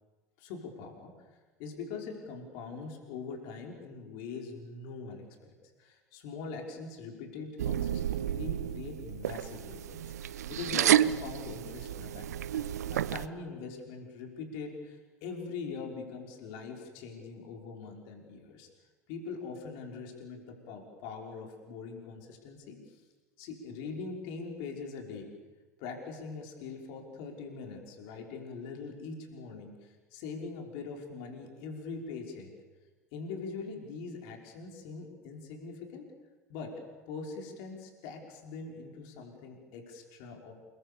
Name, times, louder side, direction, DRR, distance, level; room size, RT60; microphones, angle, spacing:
voice 1, 0.4-5.5 5.8-18.7 19.1-23.0 23.4-25.3 25.8-32.5 33.1-36.1 36.5-36.8 37.1-40.5, left 4 dB, 55° left, 2 dB, 5.4 m, -42 dB
sound 1, 7.6-13.3, right 11 dB, 70° right, 0.7 m, -30 dB
29.0 x 23.0 x 7.2 m, 1.3 s
figure-of-eight pair, 75°, 9 cm